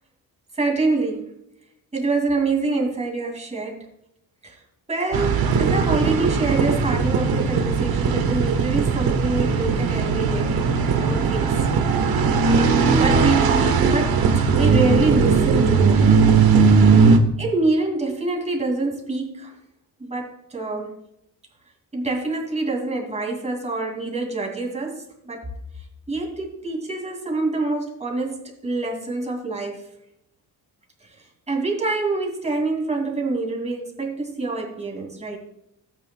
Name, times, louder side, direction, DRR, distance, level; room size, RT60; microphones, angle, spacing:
voice 1, 0.5-1.3 1.9-3.9 4.4-4.6 4.9-10.6 11.0-11.6 12.7-13.5 13.8-14.2 14.5-16.3 16.6-17.1 17.4-19.5 20.0-20.9 21.9-25.5 26.1-29.8 31.5-35.4, right 3 dB, 15° right, 1 dB, 2.3 m, -26 dB
sound 1, 5.1-17.2, right 5 dB, 70° right, 1.3 m, -18 dB
16.5 x 9.0 x 2.2 m, 0.81 s
cardioid pair, 165°, 39 cm